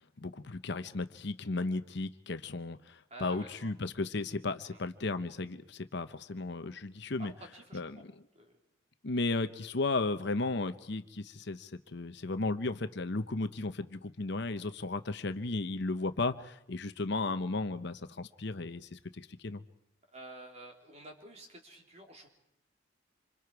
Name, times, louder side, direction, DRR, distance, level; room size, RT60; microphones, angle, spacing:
voice 1, 0.2-7.3 7.7-8.1 9.0-19.6, left 3 dB, 60° left, 10 dB, 0.9 m, -35 dB
voice 2, 3.1-3.7 4.7-4.8 7.2-8.0 8.3-8.5 20.1-22.3, right 2 dB, 35° right, 2 dB, 3.4 m, -50 dB
26.5 x 26.5 x 4.8 m, 0.79 s
head